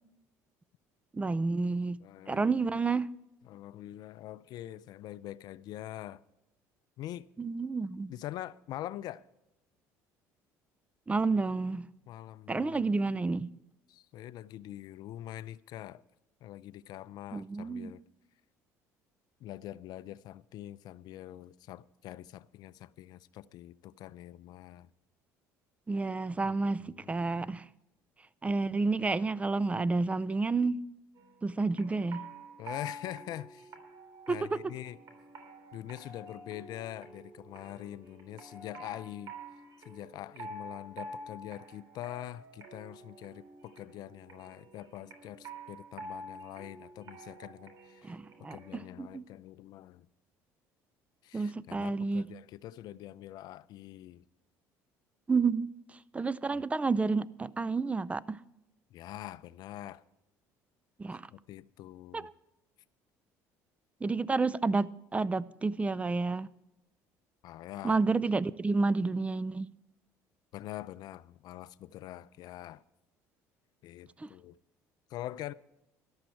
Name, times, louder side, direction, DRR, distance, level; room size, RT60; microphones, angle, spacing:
voice 1, 1.1-2.0 2.3-3.1 7.4-8.1 11.1-11.9 12.5-13.5 17.3-17.9 25.9-26.8 27.1-27.6 28.4-30.8 31.4-32.2 34.3-34.6 48.0-49.2 51.3-52.3 55.3-55.7 56.1-58.4 61.0-61.3 62.1-62.3 64.0-66.5 67.8-69.7 74.2-74.3, right 3 dB, 15° right, 0.5 m, -30 dB
voice 2, 2.0-2.7 3.5-6.2 7.0-7.3 8.1-9.3 12.1-12.8 13.9-16.0 16.4-18.0 19.4-24.9 26.4-27.5 32.6-33.7 34.3-35.0 35.7-39.3 39.8-50.1 51.2-54.2 56.5-56.6 58.9-60.0 61.3-62.3 67.4-68.0 70.5-72.8 73.8-74.5 75.1-75.5, left 13 dB, 65° left, 0.4 m, -44 dB
sound 1, 31.2-48.8, right 1 dB, 55° right, 3.3 m, -48 dB
14.0 x 11.5 x 4.5 m
supercardioid pair, 85°, 8 cm